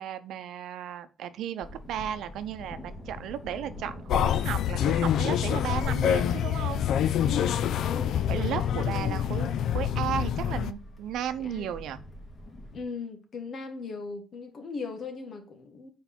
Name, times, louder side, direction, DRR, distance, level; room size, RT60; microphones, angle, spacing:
voice 1, 0.0-6.9 8.3-12.0, right 10 dB, 80° right, 0.7 m, -34 dB
Thunder, 1.6-12.8, left 1 dB, 30° left, 2.1 m, -45 dB
sound 1, 4.1-10.7, left 9 dB, 75° left, 0.4 m, -26 dB
voice 2, 7.2-9.6 11.4-11.8 12.7-15.9, left 4 dB, 55° left, 1.8 m, -39 dB
5.8 x 4.7 x 6.0 m
cardioid pair, 90°, 0 cm